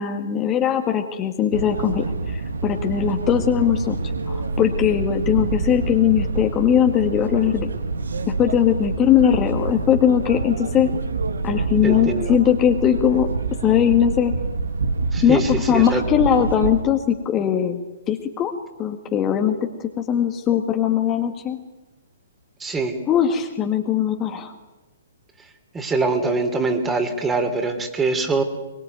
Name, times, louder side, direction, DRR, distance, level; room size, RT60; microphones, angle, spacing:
voice 1, 0.0-4.0 4.3-7.7 8.3-11.0 11.4-13.3 13.6-14.4 15.2-17.8 18.1-18.5 18.8-19.7 20.0-21.6 23.1-24.5, left 9 dB, 25° left, 5 dB, 1.9 m, -20 dB
sound 1, 1.5-16.8, right 3 dB, 75° right, 1.9 m, -27 dB
voice 2, 11.8-12.4 15.1-16.0 22.6-23.0 25.7-28.4, right 3 dB, 10° right, 7 dB, 3.1 m, -23 dB
23.0 x 22.5 x 9.4 m, 1.1 s
figure-of-eight pair, 120°, 0 cm